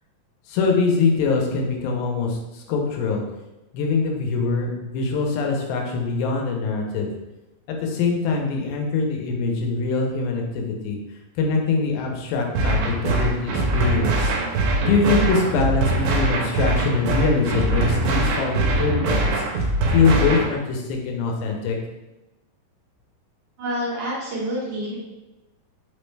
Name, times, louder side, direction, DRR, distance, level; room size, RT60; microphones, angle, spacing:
voice 1, 0.5-3.2 3.7-7.1 7.7-11.0 11.4-14.3 14.8-21.8, left 4 dB, 85° left, 1 dB, 2.5 m, -23 dB
sound 1, 12.6-20.6, right 2 dB, 90° right, 2.5 m, -22 dB
voice 2, 23.6-25.0, equal, 65° right, -7 dB, 2.1 m, -27 dB
5.6 x 2.1 x 3.1 m, 0.99 s
omnidirectional pair, 4.1 m